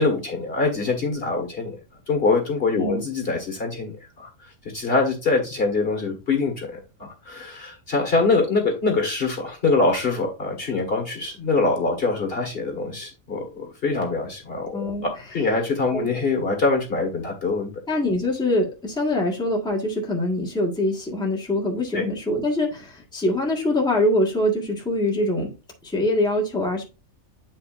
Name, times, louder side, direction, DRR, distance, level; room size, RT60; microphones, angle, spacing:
voice 1, 0.0-1.8 2.1-4.3 4.7-17.8 21.9-22.0, left 3 dB, 45° left, 3 dB, 1.9 m, -24 dB
voice 2, 14.7-15.1 15.9-16.1 17.9-25.5 25.8-26.8, left 1 dB, 5° left, -1 dB, 1.6 m, -24 dB
8.5 x 5.5 x 2.6 m, 0.30 s
omnidirectional pair, 1.5 m